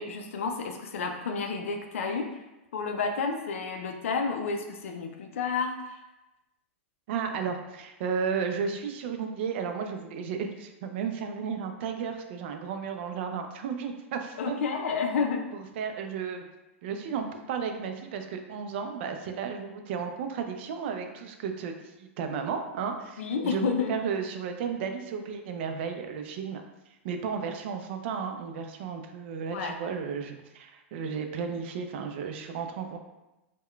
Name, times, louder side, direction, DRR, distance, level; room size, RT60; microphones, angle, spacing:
voice 1, 0.0-2.3 2.7-6.0 14.4-15.4 23.2-23.9 29.5-29.8, left 5 dB, 80° left, 4 dB, 0.3 m, -30 dB
voice 2, 7.1-14.6 15.5-16.5 16.8-26.6 27.0-33.0, right 6 dB, 60° right, 5 dB, 0.4 m, -33 dB
3.6 x 2.1 x 2.2 m, 1.0 s
hypercardioid pair, 120°, 7 cm